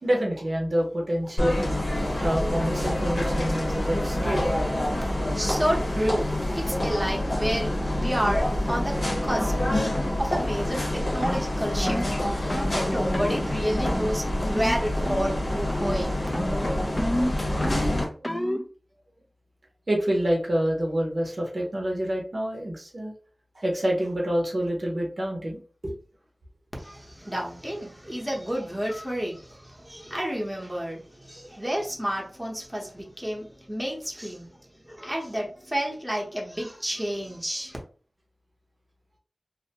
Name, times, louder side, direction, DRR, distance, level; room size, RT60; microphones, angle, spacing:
voice 1, 0.0-1.8 2.2-4.6 17.9-18.3 19.9-23.1 23.5-26.0 35.0-35.1, equal, 55° right, 0.7 m, -27 dB
sound 1, 1.4-18.0, left 1 dB, 65° left, 1.0 m, -27 dB
voice 2, 5.2-16.2 26.8-37.8, equal, 5° right, 0.8 m, -30 dB
sound 2, 8.7-8.9 9.3-9.5 9.9-10.2 10.6-10.8 11.2-11.5 11.9-12.1 12.5-12.8 13.1-13.4 13.8-14.1 14.4-14.8 15.1-15.4 15.7-16.0 16.3-18.7, equal, 15° left, 0.4 m, -30 dB
2.5 x 2.1 x 2.8 m
wide cardioid pair, 75°, 0 cm